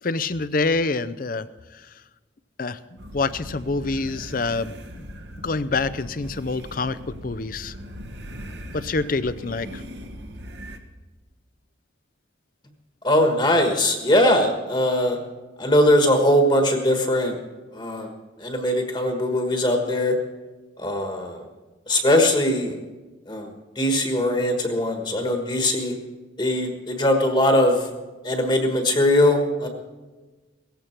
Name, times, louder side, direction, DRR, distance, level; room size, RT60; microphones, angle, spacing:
voice 1, 0.0-1.5 1.7-1.9 2.6-5.1 5.4-7.8 8.7-9.8, left 3 dB, 45° left, 15 dB, 0.5 m, -26 dB
sound 1, 3.0-10.8, equal, 60° right, 1.3 m, -39 dB
voice 2, 13.0-15.2 15.6-17.4 17.7-18.1 18.4-20.1 20.8-21.4 21.9-22.8 23.3-23.5 23.7-25.9 26.4-27.9 28.2-29.7, left 1 dB, 25° left, 4 dB, 1.4 m, -20 dB
17.5 x 15.0 x 4.5 m, 1.2 s
head